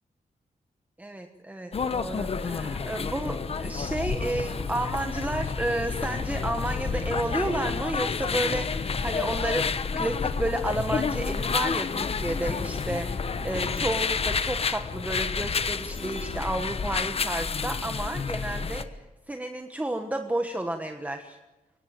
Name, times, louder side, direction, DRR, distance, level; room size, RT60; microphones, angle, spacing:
voice 1, 1.0-21.4, right 1 dB, 10° right, 6 dB, 1.3 m, -31 dB
sound 1, 1.7-18.8, left 5 dB, 40° left, 1.1 m, -29 dB
23.5 x 18.5 x 9.0 m, 1.1 s
wide cardioid pair, 155°, 15 cm